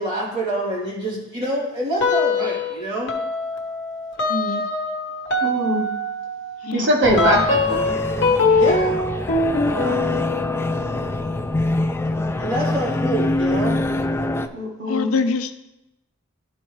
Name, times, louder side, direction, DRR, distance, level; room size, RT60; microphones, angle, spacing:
voice 1, 0.0-3.1 8.5-9.0 12.4-13.8, right 1 dB, 20° right, 3.0 m, -26 dB
sound 1, 2.0-2.7 3.1-13.4, left 3 dB, 60° left, 1.1 m, -24 dB
voice 2, 4.3-4.7 6.6-6.9 14.9-15.5, left 4 dB, 80° left, 0.5 m, -24 dB
voice 3, 5.4-5.9 6.7-7.9 9.6-10.1 14.5-15.1, right 1 dB, 60° right, 1.3 m, -22 dB
sound 2, 7.0-14.5, left 2 dB, 10° left, 0.3 m, -25 dB
12.0 x 4.4 x 3.2 m
head